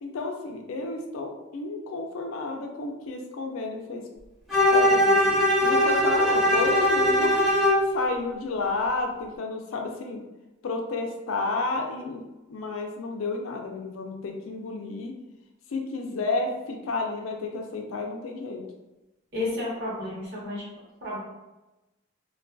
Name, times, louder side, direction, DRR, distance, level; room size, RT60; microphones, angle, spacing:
voice 1, 0.0-4.0 4.7-5.3 5.6-7.4 7.9-10.2 10.6-12.2 12.5-15.1 15.7-18.6, left 3 dB, 90° left, 2 dB, 0.4 m, -31 dB
Bowed string instrument, 4.5-7.9, left 1 dB, ahead, 0.6 m, -20 dB
voice 2, 19.3-20.7 21.0-21.2, left 2 dB, 50° right, -7 dB, 0.9 m, -31 dB
2.3 x 2.2 x 2.5 m, 1.0 s
head